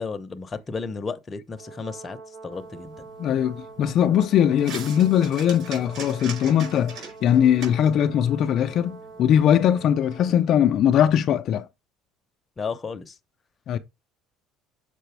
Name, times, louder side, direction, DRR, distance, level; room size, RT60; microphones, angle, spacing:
voice 1, 0.0-2.2 2.4-3.0 12.6-13.2, left 4 dB, 25° left, 0.8 m, -33 dB
Brass instrument, 1.5-10.5, right 4 dB, 70° right, 4.1 m, -44 dB
sound 1, 2.5-9.4, right 5 dB, 55° right, 5.0 m, -43 dB
voice 2, 3.2-11.7 13.7-13.8, left 9 dB, 50° left, 0.5 m, -20 dB
6.8 x 5.0 x 3.3 m
cardioid pair, 130°, 0 cm